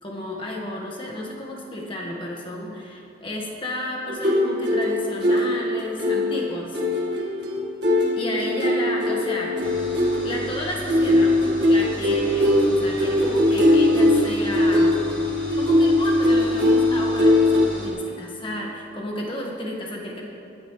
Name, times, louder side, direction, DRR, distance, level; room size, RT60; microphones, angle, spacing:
voice 1, 0.0-6.8 8.1-9.5 10.2-11.4 11.7-14.9 15.5-20.2, left 1 dB, 30° left, -2 dB, 1.6 m, -32 dB
sound 1, 4.1-17.7, left 1 dB, 60° right, 1.8 m, -21 dB
sound 2, 9.6-17.9, equal, 5° left, 3.4 m, -37 dB
19.5 x 9.5 x 3.3 m, 2.7 s
head